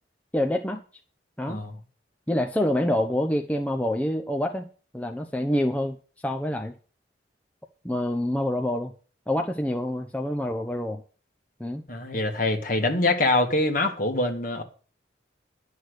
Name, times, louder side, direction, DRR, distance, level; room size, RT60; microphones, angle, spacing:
voice 1, 0.3-0.8 1.4-1.6 2.3-4.7 4.9-6.0 6.2-6.7 7.8-8.9 9.3-11.0 11.6-11.8, left 1 dB, 10° left, 0.7 m, -26 dB
voice 2, 11.9-14.6, left 2 dB, 45° left, 1.9 m, -24 dB
11.0 x 6.6 x 8.0 m
head